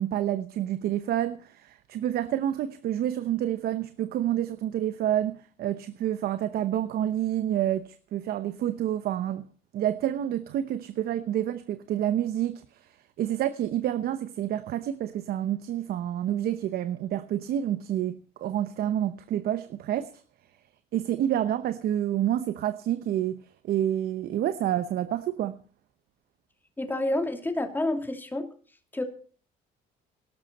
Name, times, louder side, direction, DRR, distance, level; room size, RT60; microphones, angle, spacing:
voice 1, 0.0-9.4 9.7-20.1 20.9-25.6, right 11 dB, 65° right, 0.9 m, -28 dB
voice 2, 26.8-28.5 28.9-29.0, left 1 dB, 10° left, 2.8 m, -29 dB
17.5 x 12.5 x 4.2 m
cardioid pair, 110°, 17 cm